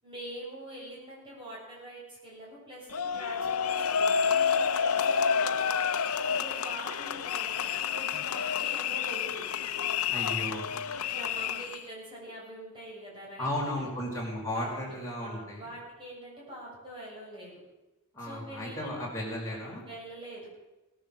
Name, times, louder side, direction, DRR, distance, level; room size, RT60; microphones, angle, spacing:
voice 1, 0.0-9.4 10.9-13.9 14.5-17.6 18.2-19.0 19.8-20.5, right 1 dB, 25° right, -5 dB, 7.0 m, -45 dB
sound 1, 2.9-11.8, left 7 dB, 90° left, 0.8 m, -29 dB
voice 2, 10.1-10.7 13.4-15.7 18.1-19.8, left 1 dB, 15° left, -3 dB, 4.7 m, -35 dB
17.5 x 10.5 x 7.4 m, 1.1 s
head